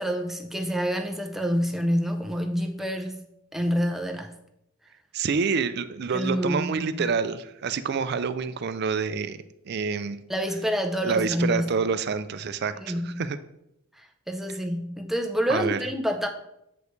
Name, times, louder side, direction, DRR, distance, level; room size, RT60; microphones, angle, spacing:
voice 1, 0.0-3.2 3.5-4.3 6.1-7.1 10.3-11.8 12.8-13.3 14.0-16.3, equal, ahead, 4 dB, 0.5 m, -28 dB
voice 2, 5.1-10.2 11.0-13.4 15.5-15.8, right 5 dB, 50° right, 12 dB, 0.4 m, -27 dB
7.8 x 5.1 x 3.2 m, 0.82 s
head